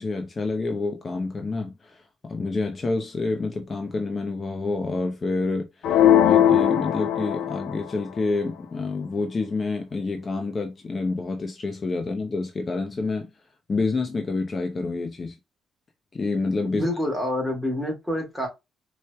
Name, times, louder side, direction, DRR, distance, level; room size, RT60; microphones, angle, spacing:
voice 1, 0.0-13.3 13.7-15.4 16.1-16.8, left 3 dB, 35° left, 0.7 m, -28 dB
sound 1, 5.8-7.9, left 10 dB, 80° left, 0.4 m, -19 dB
voice 2, 16.7-18.5, left 1 dB, 5° right, 2.0 m, -27 dB
4.4 x 3.1 x 2.2 m
cardioid pair, 90°, 0 cm